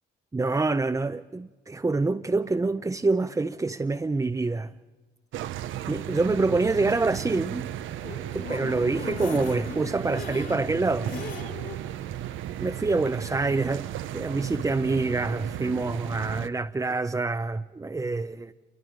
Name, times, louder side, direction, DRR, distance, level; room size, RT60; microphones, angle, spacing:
voice 1, 0.3-4.7 5.9-7.7 8.3-11.1 12.6-13.9 14.1-18.5, right 3 dB, 15° right, 0.6 m, -26 dB
sound 1, 5.3-16.5, right 12 dB, 80° right, 0.8 m, -35 dB
sound 2, 7.8-11.8 12.2-12.3 12.6-12.7, left 5 dB, 60° left, 5.0 m, -39 dB
28.5 x 23.5 x 5.1 m
cardioid pair, 90°, 20 cm